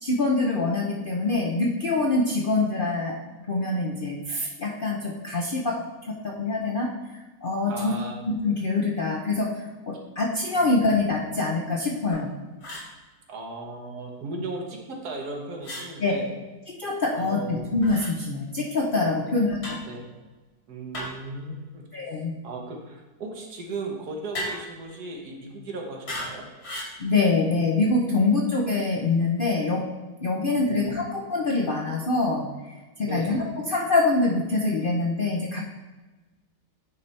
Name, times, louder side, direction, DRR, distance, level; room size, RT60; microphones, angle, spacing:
voice 1, 0.0-3.2 3.5-5.8 6.1-6.9 7.4-7.9 8.2-12.3 16.0-16.1 16.7-19.8 21.9-22.3 27.0-29.8 30.2-32.5 33.0-35.6, left 3 dB, 55° left, -1 dB, 0.6 m, -25 dB
voice 2, 7.7-8.2 10.6-10.7 13.3-16.3 17.1-17.7 19.2-19.3 19.9-20.0 20.7-21.8 22.4-26.4 30.4-30.8 33.0-33.3, right 2 dB, 75° right, 0 dB, 1.6 m, -36 dB
sound 1, 12.1-12.3 12.6-12.9 15.6-15.9 17.8-18.1 19.6-19.9 20.9-21.3 24.3-24.8 26.1-26.3 26.6-27.0, equal, 70° left, 2.9 m, -35 dB
9.5 x 3.3 x 4.1 m, 1.2 s
omnidirectional pair, 1.7 m